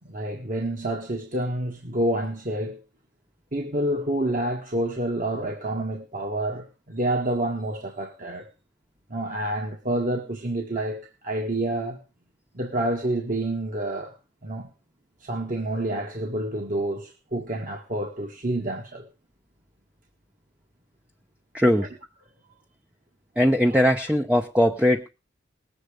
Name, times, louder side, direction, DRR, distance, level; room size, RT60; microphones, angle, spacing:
voice 1, 0.1-2.8 3.5-8.5 9.1-12.0 12.5-14.1 14.4-14.7 15.2-19.1 23.7-23.8, right 1 dB, 45° right, 1.6 m, -28 dB
voice 2, 21.5-21.9 23.4-25.1, equal, 5° right, 0.7 m, -20 dB
19.5 x 8.0 x 5.0 m
head